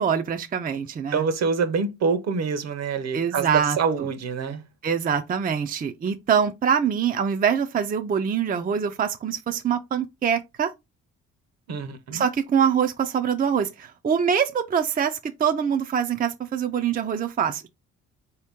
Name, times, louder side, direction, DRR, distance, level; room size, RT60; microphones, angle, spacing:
voice 1, 0.0-1.2 3.1-3.8 4.8-10.7 12.1-17.8, right 7 dB, 30° right, 0.5 m, -24 dB
voice 2, 1.1-4.6 11.7-12.2, right 5 dB, 60° right, 0.9 m, -26 dB
4.3 x 2.8 x 3.5 m
cardioid pair, 90°, 30 cm